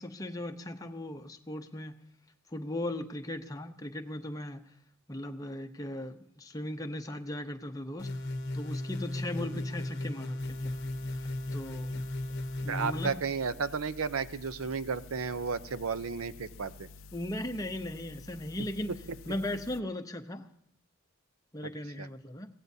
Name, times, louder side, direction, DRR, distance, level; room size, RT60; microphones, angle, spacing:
voice 1, 0.0-1.9 2.5-4.6 5.1-8.1 8.5-10.7 11.2-12.0 12.6-13.2 17.1-18.9 19.3-20.5 21.5-22.5, left 1 dB, 15° left, 0.7 m, -38 dB
sound 1, 8.0-13.1, left 1 dB, 50° left, 0.8 m, -35 dB
sound 2, 10.4-19.8, left 4 dB, 65° left, 0.4 m, -50 dB
voice 2, 12.7-16.9 18.9-19.0 22.0-22.1, right 5 dB, 80° right, 0.6 m, -33 dB
22.5 x 16.0 x 2.7 m
head